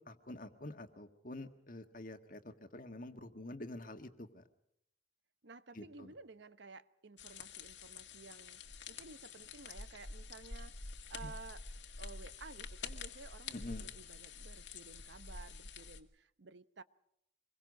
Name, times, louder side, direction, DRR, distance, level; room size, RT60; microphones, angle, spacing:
voice 1, 0.1-4.4 5.7-6.1 11.2-11.3 13.5-13.9, left 1 dB, 45° left, 1.7 m, -47 dB
voice 2, 5.4-8.6 8.9-11.6 12.0-16.8, right 4 dB, 70° right, 0.9 m, -54 dB
sound 1, 7.2-16.0, left 4 dB, 75° left, 1.9 m, -48 dB
26.0 x 22.0 x 5.4 m
head